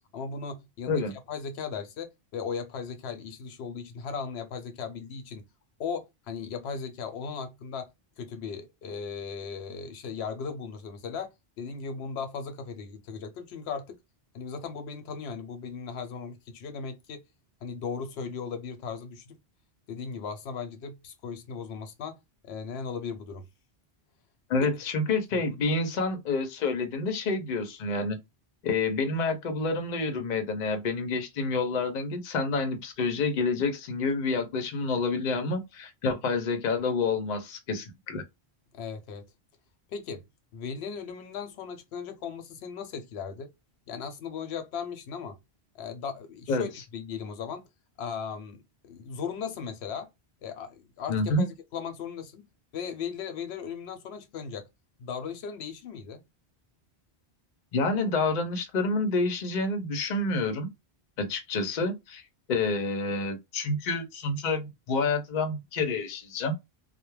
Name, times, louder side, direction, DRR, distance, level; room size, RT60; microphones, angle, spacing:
voice 1, 0.1-5.4 5.8-7.9 8.2-11.3 11.6-14.0 14.3-17.2 17.6-19.4 19.9-22.2 22.4-23.4 24.6-24.7 25.5-25.6 38.7-39.3 39.9-40.2 40.5-43.5 43.9-45.4 45.7-47.6 48.0-50.1 50.4-52.5 52.7-54.7 55.0-56.2, left 6 dB, 90° left, 0.8 m, -37 dB
voice 2, 24.5-28.2 28.6-38.2 46.5-46.7 51.1-51.5 57.7-60.7 61.2-62.2 62.5-66.5, left 3 dB, 55° left, 0.6 m, -28 dB
2.2 x 2.0 x 3.1 m
omnidirectional pair, 1.1 m